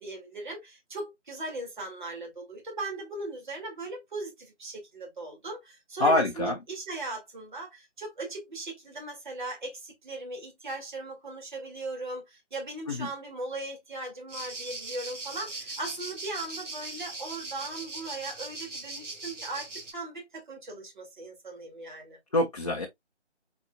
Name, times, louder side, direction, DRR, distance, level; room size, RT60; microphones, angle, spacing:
voice 1, 0.0-22.2, right 2 dB, 40° right, 2.1 m, -38 dB
voice 2, 6.0-6.6 12.9-13.1 22.3-22.9, left 2 dB, 30° left, 0.7 m, -25 dB
sound 1, 14.3-19.9, right 2 dB, 90° right, 1.2 m, -40 dB
4.2 x 4.1 x 2.2 m
figure-of-eight pair, 155°, 36 cm